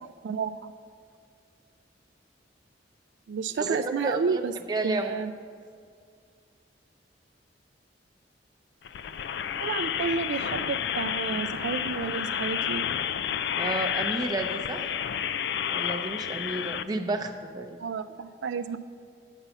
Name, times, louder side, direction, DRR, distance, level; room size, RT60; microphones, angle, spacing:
voice 1, 0.2-0.7 3.3-4.5 4.8-5.3 9.6-12.8 17.8-18.8, right 5 dB, 75° right, 11 dB, 0.3 m, -31 dB
voice 2, 3.6-4.4 4.7-5.1 13.6-15.0 15.7-17.8, right 2 dB, 20° right, 3 dB, 0.6 m, -31 dB
sound 1, 8.8-16.8, left 9 dB, 65° left, 0.3 m, -30 dB
9.0 x 5.5 x 7.0 m, 2.2 s
head